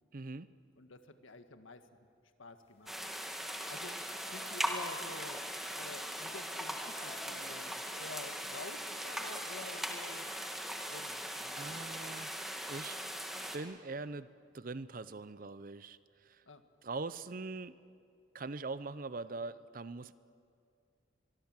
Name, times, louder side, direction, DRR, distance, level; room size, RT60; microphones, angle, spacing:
voice 1, 0.1-0.5 11.6-12.3 12.7-13.0 13.5-16.4 16.8-17.8 18.3-20.1, right 3 dB, 45° right, 15 dB, 0.6 m, -42 dB
voice 2, 0.8-1.8 2.4-2.9 3.7-4.0 4.3-5.4 5.7-10.4 10.8-12.1 16.4-16.6, left 3 dB, 80° left, 8 dB, 1.6 m, -50 dB
sound 1, 2.8-12.1 12.5-13.0, left 1 dB, 35° left, 5.8 m, -58 dB
sound 2, 2.9-13.6, equal, ahead, 1.7 m, -40 dB
24.0 x 24.0 x 7.5 m, 2.4 s
head